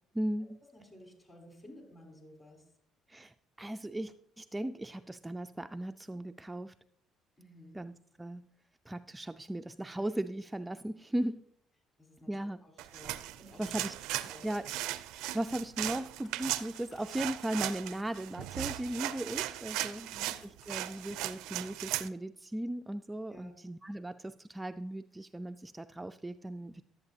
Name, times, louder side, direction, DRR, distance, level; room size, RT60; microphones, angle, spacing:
voice 1, 0.1-0.6 3.1-6.7 7.7-8.4 8.9-11.4 12.3-12.6 13.6-13.9 14.4-14.7 15.1-20.0 20.7-26.8, right 1 dB, 10° right, 9 dB, 0.3 m, -37 dB
voice 2, 0.7-2.6 7.4-7.8 12.0-13.7 14.3-14.5 19.9-20.4 23.3-23.6, equal, 30° left, 2 dB, 3.6 m, -54 dB
sound 1, 12.8-22.1, right 14 dB, 80° right, 0.4 m, -37 dB
sound 2, 16.2-21.3, left 2 dB, 60° left, 1.9 m, -62 dB
11.5 x 8.1 x 2.8 m, 0.69 s
supercardioid pair, 75°, 0 cm